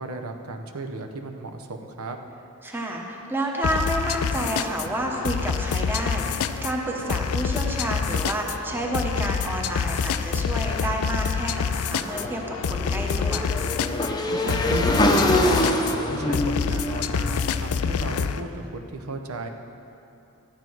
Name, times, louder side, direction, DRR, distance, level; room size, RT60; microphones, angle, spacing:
voice 1, 0.0-2.2 14.3-19.5, right 2 dB, 85° right, 5 dB, 0.8 m, -34 dB
voice 2, 2.6-13.5, right 1 dB, 10° right, 0 dB, 1.0 m, -30 dB
sound 1, 3.6-18.4, left 6 dB, 85° left, 0.4 m, -27 dB
Motorcycle / Engine, 12.1-18.2, left 1 dB, 20° left, 0.7 m, -25 dB
12.5 x 9.2 x 4.6 m, 2.9 s
head